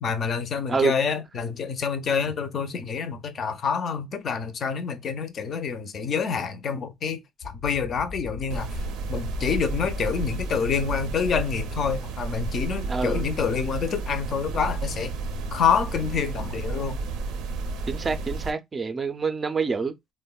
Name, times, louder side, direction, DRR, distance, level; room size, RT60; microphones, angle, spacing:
voice 1, 0.0-8.8 9.1-15.1 15.5-17.0, left 6 dB, 45° left, 0.5 m, -27 dB
sound 1, 7.4-12.5, left 4 dB, 80° left, 0.7 m, -41 dB
sound 2, 8.5-18.5, right 3 dB, 90° right, 0.5 m, -32 dB
voice 2, 12.9-13.3 17.9-19.9, right 5 dB, 25° right, 0.4 m, -26 dB
3.4 x 2.1 x 2.2 m
cardioid pair, 130°, 0 cm